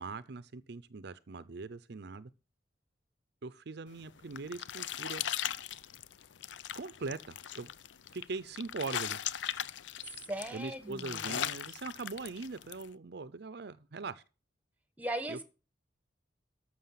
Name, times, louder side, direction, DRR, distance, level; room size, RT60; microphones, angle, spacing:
voice 1, 0.0-2.3 3.4-5.2 6.7-7.7 8.1-9.2 10.5-14.2 15.3-15.4, right 4 dB, 60° right, 0.6 m, -41 dB
sound 1, 4.0-12.9, left 10 dB, 75° left, 0.6 m, -39 dB
voice 2, 10.2-11.3 15.0-15.4, right 1 dB, 10° right, 1.3 m, -38 dB
13.5 x 6.3 x 5.7 m
head